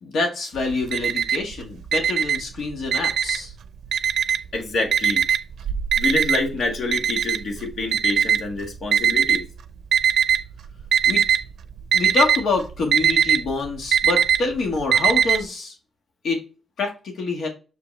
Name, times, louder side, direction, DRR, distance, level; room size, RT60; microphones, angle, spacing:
voice 1, 0.0-3.5 11.0-11.2 11.9-15.7 16.2-16.4 16.8-17.5, left 3 dB, 80° left, 1.5 m, -26 dB
Alarm, 0.6-1.5 1.9-3.5 3.9-4.6 4.9-9.4 9.9-10.5 10.8-11.4 11.7-15.4, right 8 dB, 90° right, 0.6 m, -20 dB
voice 2, 4.5-5.2 6.0-9.4, left 2 dB, 55° left, 1.7 m, -27 dB
6.8 x 4.9 x 3.2 m
wide cardioid pair, 165°, 0 cm